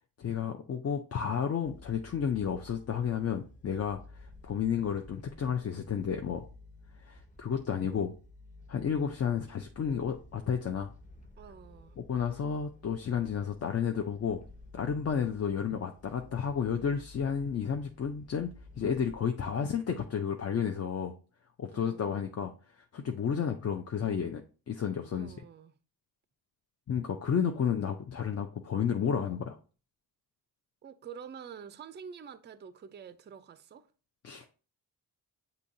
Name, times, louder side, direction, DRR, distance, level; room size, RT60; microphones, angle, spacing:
voice 1, 0.2-6.5 7.0-8.1 8.7-10.9 12.0-14.4 14.7-18.5 18.8-21.1 21.6-25.3 26.9-29.6 34.2-34.5, left 7 dB, 40° left, 0.5 m, -32 dB
sound 1, 1.6-19.2, left 2 dB, 20° left, 0.9 m, -54 dB
voice 2, 11.4-12.0 21.7-22.1 25.1-25.7 30.8-33.9, right 7 dB, 25° right, 0.4 m, -47 dB
6.9 x 2.8 x 2.6 m
cardioid pair, 70°, 41 cm